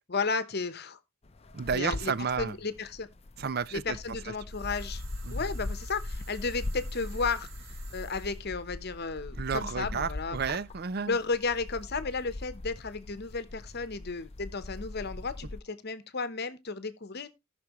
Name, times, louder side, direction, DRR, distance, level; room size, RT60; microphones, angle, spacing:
voice 1, 0.1-1.0 1.7-2.1 2.4-3.1 3.7-5.0 5.3-7.5 7.9-10.4 11.1-17.3, left 4 dB, 50° left, 0.9 m, -33 dB
sound 1, 1.2-15.6, left 2 dB, 30° left, 0.6 m, -40 dB
voice 2, 1.5-2.6 3.4-4.0 4.3-4.4 5.2-5.4 9.3-11.2, right 6 dB, 50° right, 0.5 m, -32 dB
sound 2, 4.5-8.4, right 5 dB, 80° right, 3.2 m, -52 dB
18.0 x 6.0 x 3.0 m
head